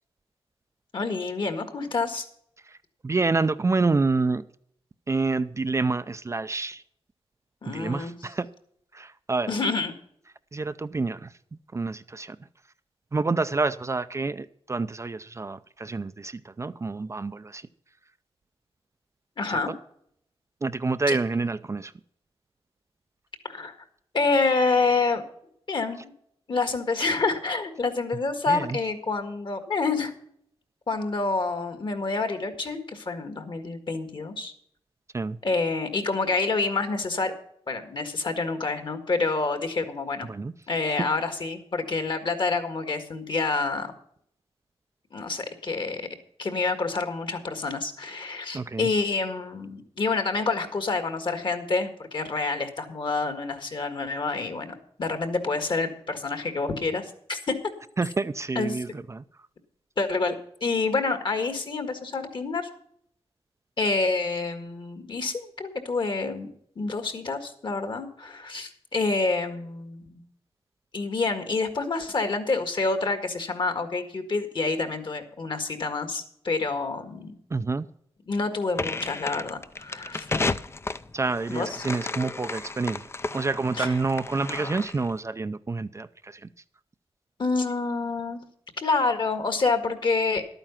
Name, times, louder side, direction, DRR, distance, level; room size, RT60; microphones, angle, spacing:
voice 1, 0.9-2.3 7.6-8.2 9.5-9.9 19.4-19.7 21.1-21.2 23.5-23.8 24.1-25.2 25.7-26.1 26.5-30.1 30.9-34.5 35.4-37.3 37.7-40.3 40.7-43.9 45.1-46.0 46.4-57.5 58.6-58.8 60.0-60.3 60.6-62.7 63.8-66.5 66.8-70.2 70.9-77.3 78.3-80.3 81.5-81.7 83.8-83.9 87.4-88.4 88.8-90.4, left 3 dB, 50° left, 1.7 m, -27 dB
voice 2, 3.0-4.4 5.1-6.8 7.7-8.5 8.9-9.5 10.5-11.3 11.7-12.4 13.1-17.7 19.5-19.8 20.6-21.9 28.5-28.8 35.1-35.4 40.3-40.5 48.5-48.9 58.0-59.2 77.5-77.9 81.1-86.5, right 3 dB, 30° right, 0.5 m, -28 dB
sound 1, 78.7-85.1, left 3 dB, 25° left, 0.5 m, -33 dB
12.0 x 9.0 x 5.7 m
wide cardioid pair, 100°, 10 cm